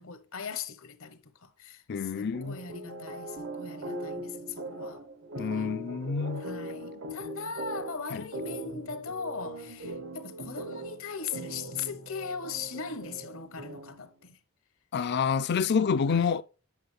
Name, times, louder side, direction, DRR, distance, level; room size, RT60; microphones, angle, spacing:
voice 1, 0.0-5.0 5.4-5.7 6.4-14.4 16.1-16.4, left 5 dB, 70° left, 1.0 m, -39 dB
voice 2, 1.9-2.6 5.4-6.5 8.1-8.3 14.9-16.4, left 6 dB, 50° left, 0.4 m, -28 dB
sound 1, 2.3-14.1, right 1 dB, 70° right, 1.0 m, -40 dB
Bass guitar, 3.4-6.0, right 4 dB, 30° right, 0.5 m, -48 dB
9.3 x 5.9 x 3.3 m
head